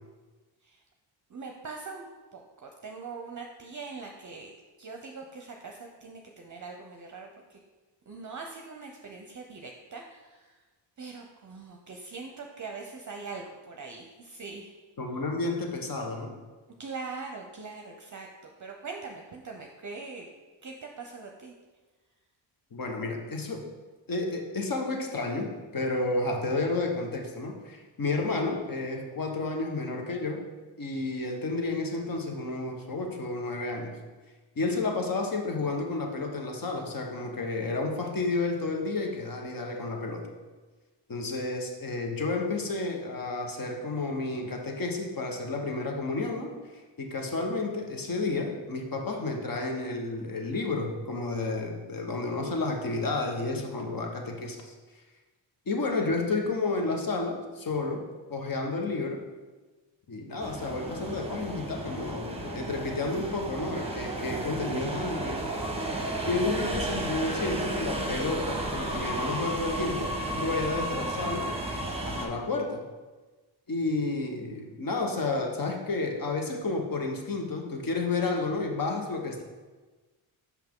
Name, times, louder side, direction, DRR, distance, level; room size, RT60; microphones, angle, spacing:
voice 1, 1.3-2.1 2.3-4.5 4.8-7.6 8.1-10.6 11.0-14.8 16.8-20.3 20.6-21.5, right 4 dB, 40° right, 2 dB, 0.7 m, -42 dB
voice 2, 15.0-16.4 22.7-23.6 24.1-30.4 30.8-34.0 34.6-40.3 41.1-54.7 55.7-58.0 58.3-59.2 60.1-65.4 66.3-71.5 72.0-72.8 73.7-79.4, left 3 dB, 45° left, 3 dB, 1.2 m, -31 dB
sound 1, 60.4-72.3, right 1 dB, 10° right, 1.0 m, -33 dB
6.1 x 5.6 x 3.7 m, 1.3 s
cardioid pair, 70°, 48 cm